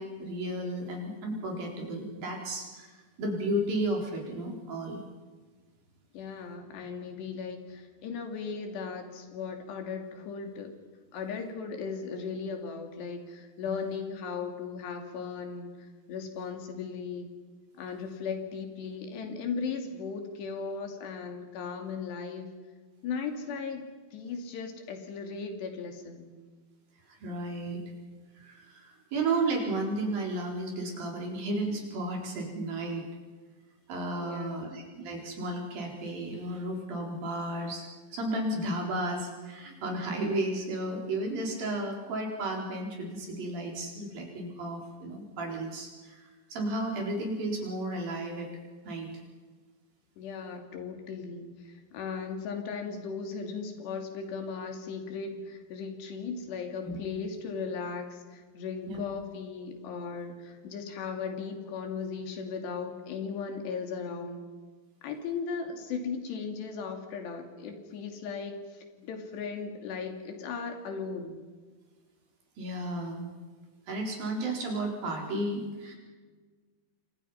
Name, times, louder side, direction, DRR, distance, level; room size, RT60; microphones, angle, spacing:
voice 1, 0.0-5.0 13.6-13.9 27.1-27.8 28.4-33.0 33.9-48.5 48.8-49.1 56.8-57.0 58.9-59.0 72.6-73.2 73.9-75.9, right 1 dB, 60° right, 0 dB, 5.9 m, -33 dB
voice 2, 6.1-10.7 11.1-17.3 17.7-22.5 23.0-26.3 34.2-34.7 50.2-64.5 65.0-71.4, left 5 dB, 85° left, 4 dB, 4.8 m, -37 dB
29.0 x 24.5 x 5.8 m, 1.4 s
omnidirectional pair, 4.8 m